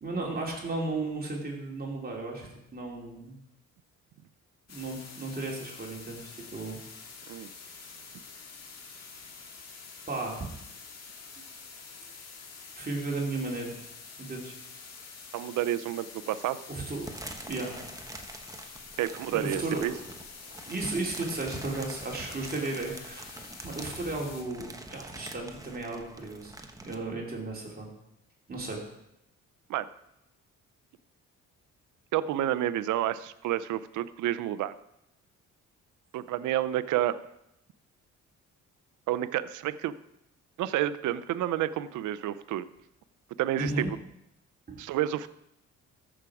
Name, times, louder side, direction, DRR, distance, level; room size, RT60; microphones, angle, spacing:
voice 1, 0.0-3.4 4.7-6.8 10.1-10.5 12.8-13.7 14.2-14.6 16.7-17.1 17.5-17.9 19.3-19.8 20.5-26.5 26.8-27.9 28.5-28.8 43.6-43.9 44.7-44.8, right 2 dB, 30° right, -1 dB, 2.7 m, -34 dB
sound 1, 4.7-24.4, left 5 dB, 60° left, 2.0 m, -47 dB
voice 2, 15.3-16.6 19.0-19.9 29.7-29.9 32.1-34.7 36.1-37.2 39.1-39.9 40.6-42.7 43.4-43.9 44.8-45.3, right 12 dB, 80° right, 15 dB, 0.6 m, -29 dB
sound 2, 17.0-27.0, right 2 dB, 10° right, 1.1 m, -45 dB
14.0 x 6.2 x 4.8 m, 0.84 s
cardioid pair, 90°, 30 cm